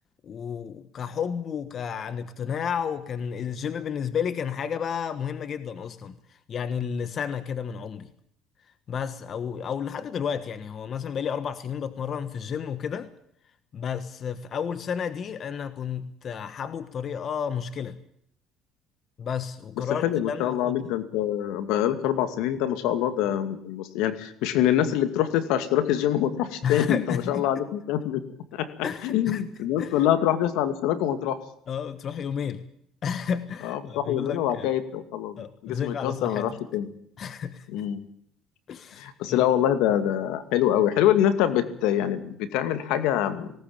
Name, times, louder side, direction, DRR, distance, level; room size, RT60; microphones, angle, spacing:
voice 1, 0.2-8.1 8.9-13.1 13.7-18.0 19.2-20.9 26.6-27.5 28.8-29.4 29.8-29.9 31.7-32.6 33.0-34.7 35.4-36.6 37.2-37.7 38.7-39.4, left 7 dB, 45° left, 12 dB, 1.4 m, -32 dB
voice 2, 20.0-28.2 28.5-28.7 29.0-31.4 33.6-35.4 35.6-36.9 37.7-38.1 39.0-43.5, left 11 dB, 80° left, 10 dB, 2.3 m, -25 dB
19.0 x 18.5 x 8.8 m, 0.68 s
cardioid pair, 100°, 0 cm